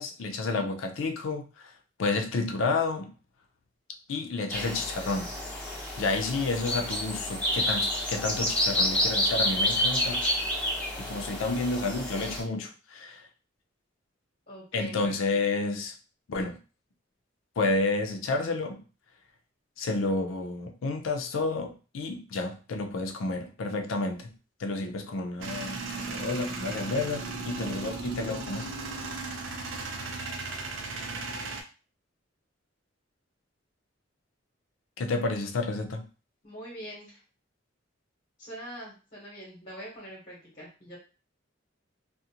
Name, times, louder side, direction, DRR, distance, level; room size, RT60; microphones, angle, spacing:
voice 1, 0.0-1.7 2.0-3.1 4.1-5.3 6.0-10.2 11.0-13.2 14.7-15.9 16.3-16.6 17.6-18.8 19.8-24.3 24.6-28.7 35.0-36.0, left 3 dB, 90° left, 0.4 m, -30 dB
sound 1, 4.5-12.4, left 1 dB, 5° left, 0.7 m, -29 dB
voice 2, 14.5-15.4 36.4-37.2 38.4-41.0, equal, 40° left, 1.0 m, -43 dB
Male speech man speaking / Vehicle / Engine starting, 25.4-31.6, right 3 dB, 70° right, 0.5 m, -36 dB
2.4 x 2.0 x 2.8 m
head